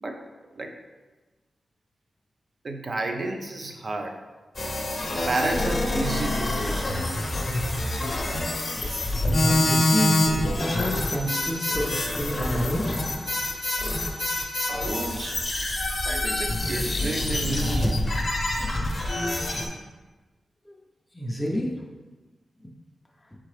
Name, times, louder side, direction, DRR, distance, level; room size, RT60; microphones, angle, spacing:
voice 1, 2.6-4.2 5.3-6.9 14.7-15.4 16.1-18.0, right 2 dB, 45° right, 4 dB, 0.5 m, -31 dB
sound 1, 4.5-19.7, left 1 dB, 40° left, 0.7 m, -26 dB
voice 2, 9.2-10.2 10.6-13.0 20.7-20.8 21.1-21.7, equal, 10° left, -2 dB, 0.5 m, -29 dB
4.4 x 3.7 x 3.2 m, 1.2 s
wide cardioid pair, 100°, 0 cm